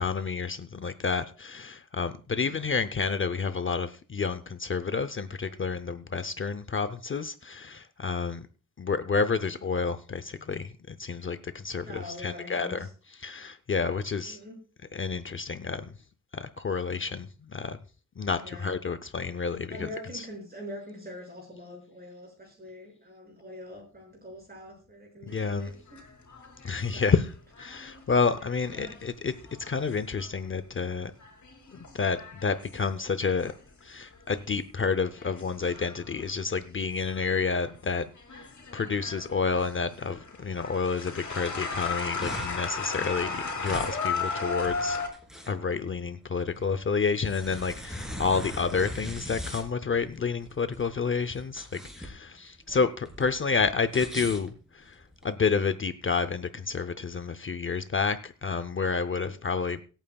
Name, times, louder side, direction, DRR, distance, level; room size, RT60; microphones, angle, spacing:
voice 1, 0.0-8.5 8.8-12.8 13.2-14.4 14.9-15.9 16.3-17.8 18.2-19.8 20.1-20.2 25.3-25.7 26.6-27.3 27.6-29.3 29.7-31.1 31.7-33.5 33.8-38.1 38.3-38.5 38.7-45.0 45.5-55.0 55.2-59.8, left 5 dB, 40° left, 11 dB, 0.6 m, -29 dB
voice 2, 11.8-12.9 14.2-14.6 18.4-18.7 19.7-26.0 26.7-27.1 28.7-28.9 52.7-52.9 59.2-59.3, left 1 dB, 30° right, -1 dB, 6.1 m, -44 dB
sound 1, 25.3-30.6 31.0-33.8 34.1-34.6 35.1-37.8 38.1-45.1, left 4 dB, 65° left, 3.5 m, -36 dB
sound 2, 42.2-55.3, equal, ahead, 3.2 m, -41 dB
23.5 x 9.0 x 2.3 m, 0.37 s
wide cardioid pair, 145°, 31 cm